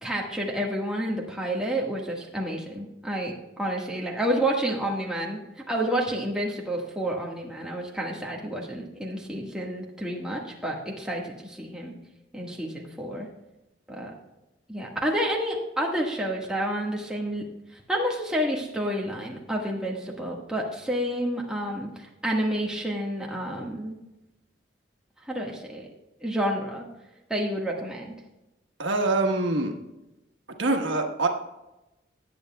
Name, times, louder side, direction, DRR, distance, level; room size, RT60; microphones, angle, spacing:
voice 1, 0.0-5.4 5.7-11.9 12.3-13.3 13.9-14.1 14.7-17.4 17.7-24.0 25.2-25.9 26.2-26.8 27.3-28.1, right 1 dB, 5° right, -2 dB, 1.5 m, -29 dB
voice 2, 28.8-29.7 30.6-31.3, right 2 dB, 90° right, 3 dB, 1.3 m, -24 dB
18.5 x 8.2 x 2.3 m, 0.97 s
head